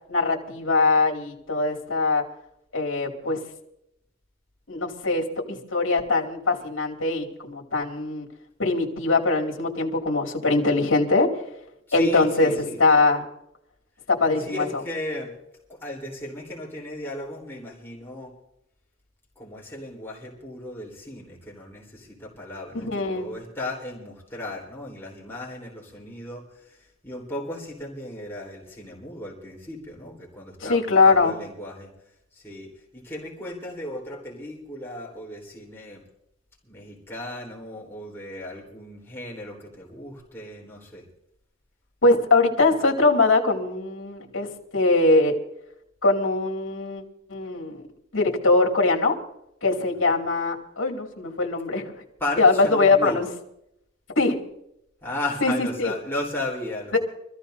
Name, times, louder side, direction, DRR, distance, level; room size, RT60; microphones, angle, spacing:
voice 1, 0.1-2.2 2.7-3.4 4.7-8.3 8.6-11.4 11.9-13.2 14.1-14.7 22.8-23.3 30.6-31.3 42.0-45.3 46.0-47.0 47.3-47.9 48.1-49.1 49.6-51.9 52.4-53.3 54.2-54.4 55.4-55.9 56.9-57.0, left 3 dB, 80° left, 2 dB, 2.5 m, -22 dB
voice 2, 11.9-12.8 14.4-15.4 15.7-18.3 19.4-31.9 32.3-36.0 36.7-41.0 52.2-53.2 55.0-57.0, left 1 dB, 10° left, -3 dB, 3.8 m, -35 dB
25.5 x 14.5 x 2.7 m, 0.79 s
head